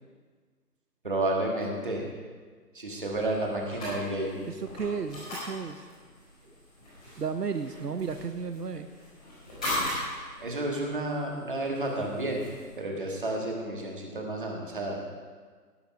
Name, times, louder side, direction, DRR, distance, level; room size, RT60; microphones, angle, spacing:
voice 1, 1.0-2.1 2.7-4.5 10.4-12.5 12.8-15.0, right 1 dB, 30° right, 0 dB, 1.7 m, -31 dB
sound 1, 3.1-12.8, left 1 dB, 5° left, 1.4 m, -39 dB
voice 2, 4.5-5.9 7.2-8.9, right 6 dB, 70° right, 8 dB, 0.8 m, -33 dB
17.0 x 7.1 x 5.2 m, 1.5 s
figure-of-eight pair, 170°, 49 cm